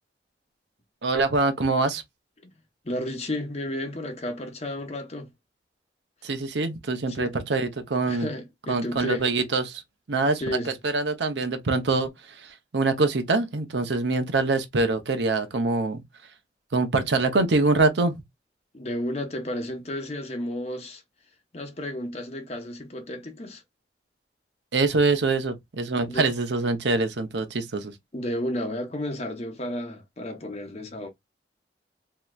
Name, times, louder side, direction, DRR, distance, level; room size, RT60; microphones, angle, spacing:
voice 1, 1.0-2.0 6.2-8.3 8.7-9.8 10.1-16.0 16.7-18.2 24.7-27.9, right 3 dB, 85° right, 0.7 m, -24 dB
voice 2, 2.8-5.3 7.2-7.4 8.1-9.2 10.4-10.7 18.7-21.0 21.5-23.6 26.1-26.3 28.1-31.1, left 1 dB, 35° left, 0.9 m, -32 dB
3.2 x 2.8 x 2.3 m
head